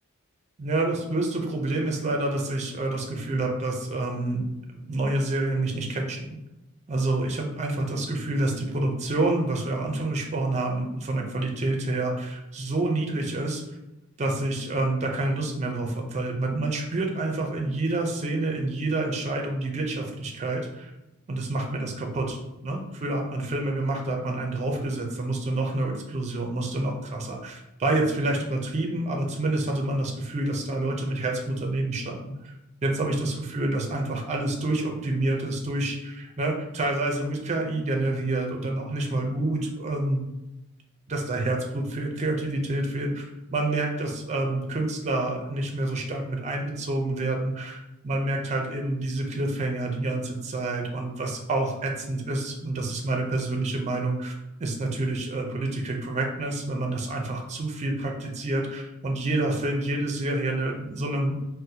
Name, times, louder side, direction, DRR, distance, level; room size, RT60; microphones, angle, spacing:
voice 1, 0.6-4.5 4.9-6.4 6.9-13.6 14.2-20.9 21.3-22.4 22.6-32.5 32.8-40.2 41.1-54.3 54.6-61.4, right 2 dB, 30° right, 2 dB, 0.5 m, -28 dB
3.9 x 2.1 x 2.7 m, 0.94 s
head